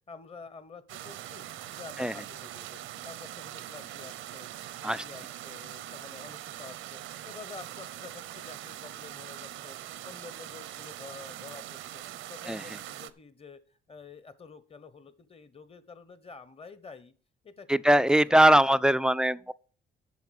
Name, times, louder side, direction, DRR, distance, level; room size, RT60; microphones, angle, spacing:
voice 1, 0.1-4.5 4.8-12.0 12.3-17.1 17.4-18.6, left 5 dB, 30° left, 1.1 m, -49 dB
sound 1, 0.9-13.1, right 13 dB, 85° right, 0.7 m, -42 dB
voice 2, 17.7-19.5, right 1 dB, 5° right, 0.3 m, -21 dB
8.3 x 6.7 x 6.5 m
cardioid pair, 90°, 20 cm